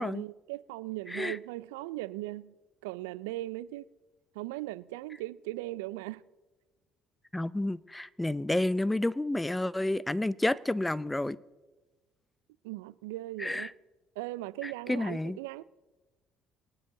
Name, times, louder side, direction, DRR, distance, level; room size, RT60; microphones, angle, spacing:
voice 1, 0.0-2.5 2.8-3.9 4.4-6.2 12.6-13.7 14.2-15.6, right 17 dB, 85° right, 0.3 m, -38 dB
voice 2, 7.3-11.4 13.4-13.7 14.6-15.4, left 1 dB, 10° left, 0.5 m, -30 dB
23.0 x 9.6 x 3.8 m
hypercardioid pair, 60°, 0 cm